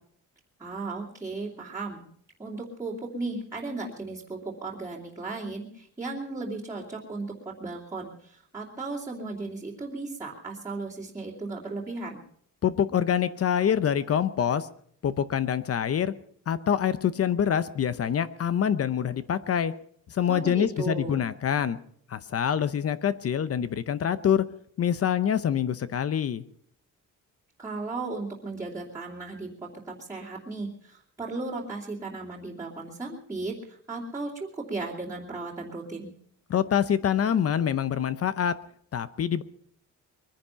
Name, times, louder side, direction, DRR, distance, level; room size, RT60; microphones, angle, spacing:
voice 1, 0.6-2.0 2.4-12.2 20.3-21.2 27.6-36.1, right 3 dB, 10° right, -7 dB, 2.6 m, -36 dB
voice 2, 12.6-14.7 15.0-16.1 16.5-19.7 20.1-21.8 22.1-24.5 24.8-26.4 36.5-38.6 38.9-39.4, left 8 dB, 45° left, 14 dB, 0.7 m, -25 dB
22.5 x 10.5 x 5.7 m, 0.64 s
wide cardioid pair, 165°, 32 cm